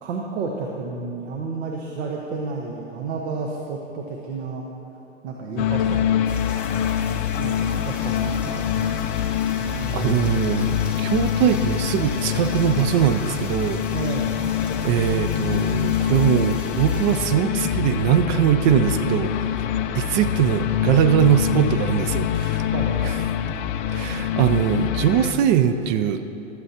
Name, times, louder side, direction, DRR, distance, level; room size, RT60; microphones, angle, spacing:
voice 1, 0.0-4.7 5.2-6.4 7.3-8.6 9.7-10.3 13.9-14.4 22.7-23.0 24.2-24.3, right 4 dB, 60° right, 0 dB, 1.3 m, -31 dB
sound 1, 5.6-25.3, left 9 dB, 40° left, 0.6 m, -25 dB
sound 2, 6.3-17.3, left 2 dB, 5° right, 1.5 m, -41 dB
voice 2, 9.6-13.8 14.8-19.3 19.9-22.7 23.0-23.1 23.9-26.2, right 9 dB, 40° right, 9 dB, 0.5 m, -21 dB
15.5 x 12.0 x 2.9 m, 3.0 s
hypercardioid pair, 115°, 37 cm